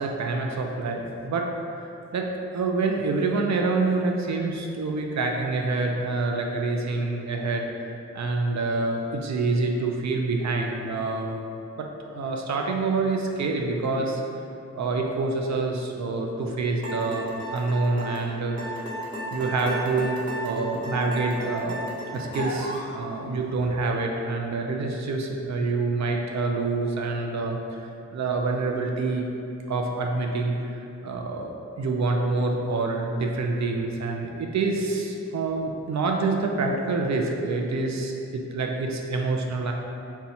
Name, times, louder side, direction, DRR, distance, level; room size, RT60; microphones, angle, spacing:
voice 1, 0.0-1.5 2.1-11.5 11.8-14.2 14.7-18.9 19.3-21.8 22.1-27.6 28.1-29.3 29.7-39.7, right 3 dB, 70° right, 1 dB, 0.5 m, -27 dB
sound 1, 16.8-22.9, equal, 15° right, 1.2 m, -33 dB
4.2 x 2.3 x 4.0 m, 2.7 s
cardioid pair, 70°, 29 cm